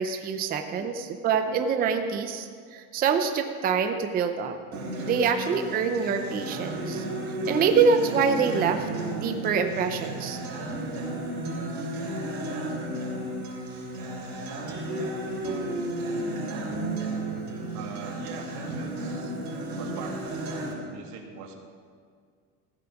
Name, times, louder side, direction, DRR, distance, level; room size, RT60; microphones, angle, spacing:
voice 1, 0.0-4.6 5.0-7.0 7.5-8.9 9.2-10.4, right 6 dB, 20° right, 7 dB, 0.5 m, -25 dB
Acoustic guitar, 4.7-20.7, right 1 dB, 40° right, 3.5 m, -33 dB
voice 2, 17.7-19.4 19.8-21.6, right 5 dB, 85° right, 2 dB, 2.1 m, -42 dB
15.5 x 8.6 x 5.8 m, 2.1 s
cardioid pair, 160°, 45 cm